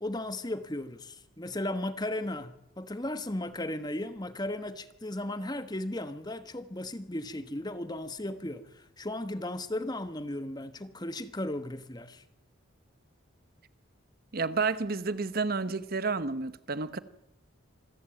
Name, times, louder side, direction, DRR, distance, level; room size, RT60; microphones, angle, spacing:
voice 1, 0.0-12.2, left 1 dB, 20° left, 1.2 m, -36 dB
voice 2, 14.3-17.0, right 4 dB, 45° right, 0.9 m, -30 dB
26.5 x 14.5 x 9.0 m
head